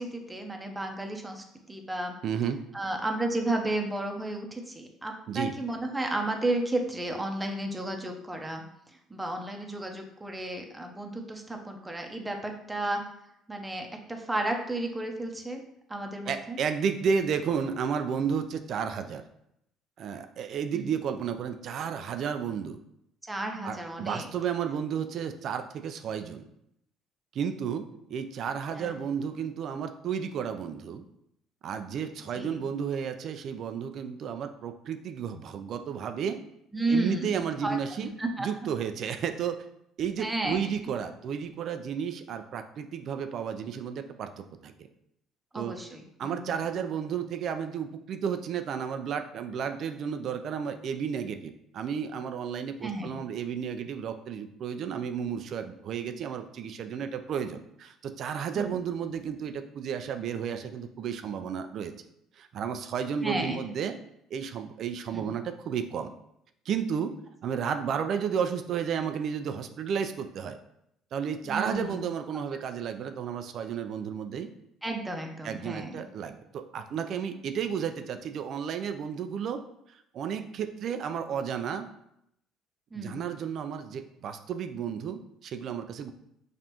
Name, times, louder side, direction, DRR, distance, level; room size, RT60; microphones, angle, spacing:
voice 1, 0.0-2.1 2.7-8.6 9.1-13.0 13.5-15.6 15.9-16.6 20.7-20.9 23.2-24.3 28.8-28.9 32.3-32.6 36.7-38.5 40.2-40.6 45.5-46.5 52.8-53.1 58.5-58.8 63.2-63.6 65.1-65.3 71.4-72.0 74.8-76.0 82.9-83.2, right 2 dB, 15° right, 3 dB, 0.7 m, -33 dB
voice 2, 2.2-2.6 5.3-5.5 16.3-19.2 20.0-22.8 23.6-26.4 27.3-31.0 31.6-36.4 36.9-38.1 38.4-39.6 40.0-44.7 45.5-45.8 46.2-61.9 62.4-63.9 64.3-66.1 66.7-67.2 67.4-70.6 71.1-74.5 75.4-79.6 79.9-81.9 82.9-86.1, right 7 dB, 60° right, 8 dB, 0.4 m, -32 dB
5.2 x 2.5 x 2.9 m, 0.77 s
supercardioid pair, 80°, 0 cm